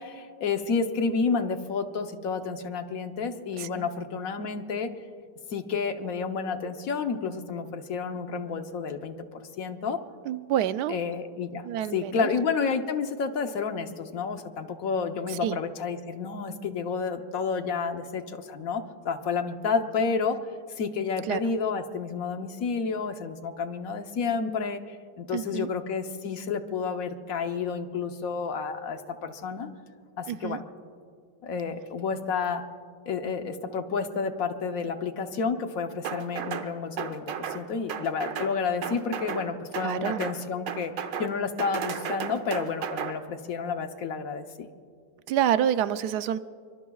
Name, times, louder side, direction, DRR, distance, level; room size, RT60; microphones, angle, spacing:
voice 1, 0.0-4.9 5.5-10.0 10.9-11.7 11.9-20.4 20.8-29.7 30.2-30.6 31.4-32.6 33.1-44.7, left 5 dB, 60° left, 7 dB, 1.2 m, -30 dB
voice 2, 3.6-3.9 10.3-11.0 11.6-12.3 15.3-15.6 21.2-21.4 25.3-25.7 30.3-30.6 39.8-40.2 45.3-46.4, right 10 dB, 75° right, 13 dB, 1.1 m, -28 dB
sound 1, 36.0-36.7 37.0-37.6 37.9-38.5 38.8-39.5 39.7-40.4 40.7-41.3 41.6-43.1, right 7 dB, 90° right, 1.6 m, -33 dB
25.0 x 24.0 x 2.4 m, 2.1 s
omnidirectional pair, 1.9 m